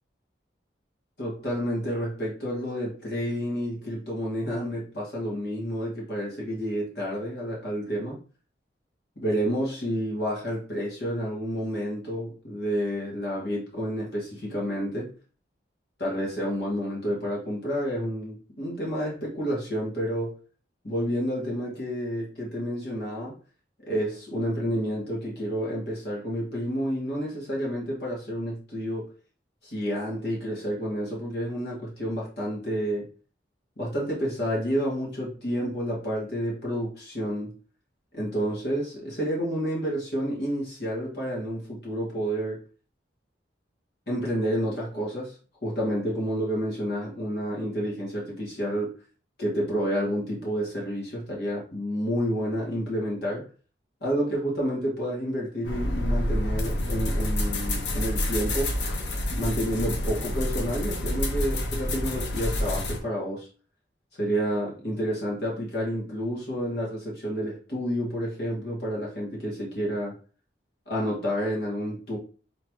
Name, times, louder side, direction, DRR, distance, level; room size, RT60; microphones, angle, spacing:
voice 1, 1.2-8.2 9.2-15.1 16.0-20.3 20.8-23.4 23.9-29.1 29.6-33.0 33.8-37.5 38.1-42.6 44.1-45.3 45.6-48.9 49.4-53.4 54.0-58.7 59.3-63.5 64.2-70.1 70.9-72.2, equal, 60° left, 2.1 m, -29 dB
sound 1, 55.6-63.0, left 1 dB, 75° left, 0.8 m, -28 dB
3.8 x 3.7 x 3.1 m
head